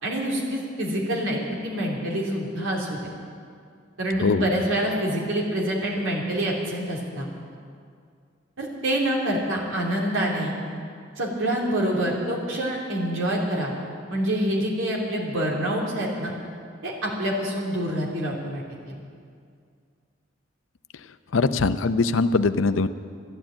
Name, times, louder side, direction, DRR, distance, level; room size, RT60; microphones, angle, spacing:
voice 1, 0.0-3.0 4.0-7.3 8.6-10.5 11.2-13.7 14.1-16.3 16.8-19.0, right 1 dB, 85° right, -3 dB, 3.0 m, -26 dB
voice 2, 21.3-22.9, left 3 dB, 85° left, 12 dB, 0.6 m, -21 dB
13.5 x 11.0 x 8.8 m, 2.2 s
head